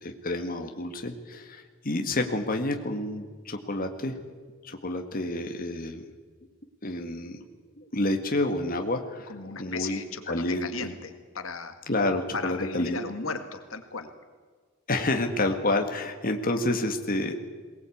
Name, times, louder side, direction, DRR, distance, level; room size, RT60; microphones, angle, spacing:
voice 1, 0.0-4.2 4.6-6.0 6.8-7.4 7.8-9.3 9.6-10.0 10.3-10.7 11.9-13.0 14.9-17.4, left 2 dB, 45° left, 5 dB, 1.8 m, -29 dB
voice 2, 9.3-11.7 12.3-14.1, left 4 dB, 75° left, 8 dB, 1.9 m, -36 dB
22.5 x 19.0 x 8.6 m, 1.5 s
head